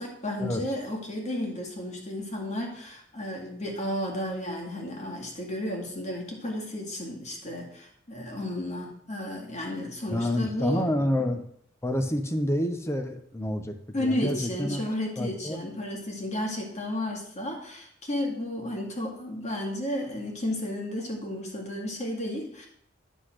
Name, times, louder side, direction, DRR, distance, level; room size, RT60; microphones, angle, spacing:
voice 1, 0.0-10.9 13.9-22.7, left 1 dB, 35° left, -1 dB, 2.1 m, -33 dB
voice 2, 10.1-11.5 11.8-14.8 15.2-15.6, left 1 dB, 15° left, 7 dB, 0.7 m, -28 dB
10.0 x 4.0 x 6.4 m, 0.67 s
head